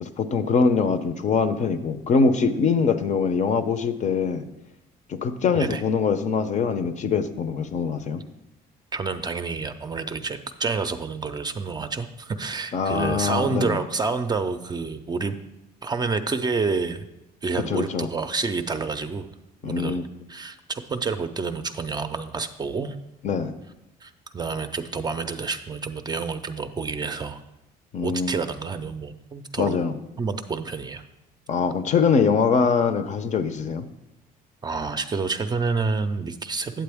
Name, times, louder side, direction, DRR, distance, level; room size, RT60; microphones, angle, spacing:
voice 1, 0.0-4.5 5.1-8.2 12.7-13.8 17.7-18.1 19.6-20.0 23.2-23.5 27.9-28.3 29.6-29.9 31.5-33.9, left 5 dB, 45° left, 10 dB, 0.6 m, -23 dB
voice 2, 8.9-15.4 15.8-17.1 17.4-19.3 19.6-20.0 20.3-23.0 24.0-27.4 28.0-29.8 30.2-31.0 34.6-36.8, right 4 dB, 25° right, 8 dB, 0.5 m, -28 dB
8.8 x 7.5 x 3.5 m, 0.92 s
cardioid pair, 110°, 17 cm